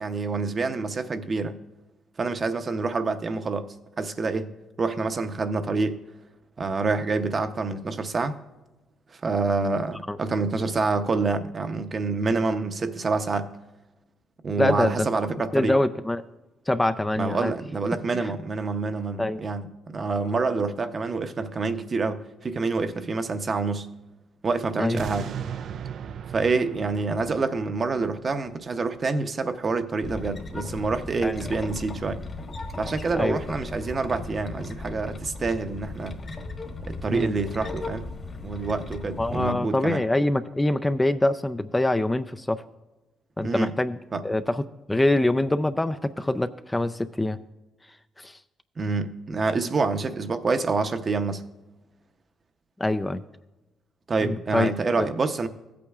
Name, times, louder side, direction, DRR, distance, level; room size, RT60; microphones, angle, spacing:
voice 1, 0.0-1.6 2.2-3.7 4.0-4.5 4.8-6.0 6.6-8.4 9.1-13.5 14.4-15.8 17.2-23.9 24.4-25.3 26.3-32.2 32.8-36.2 36.9-38.1 38.4-40.0 43.4-43.7 44.1-44.2 48.8-51.4 54.1-55.5, right 3 dB, 40° right, 9 dB, 0.7 m, -27 dB
voice 2, 14.6-15.1 15.5-16.2 16.7-17.5 19.2-19.4 24.8-25.0 31.2-31.4 33.1-33.4 37.1-37.3 39.2-42.6 43.4-44.0 44.2-47.4 48.2-48.4 52.8-53.2 54.2-54.7 55.0-55.1, left 1 dB, 10° left, 11 dB, 0.3 m, -24 dB
sound 1, 25.0-30.1 30.5-30.6, right 8 dB, 65° right, 0.3 m, -38 dB
sound 2, 30.0-39.5, left 3 dB, 35° left, 1.3 m, -37 dB
15.5 x 8.5 x 2.4 m, 1.1 s
cardioid pair, 90°, 0 cm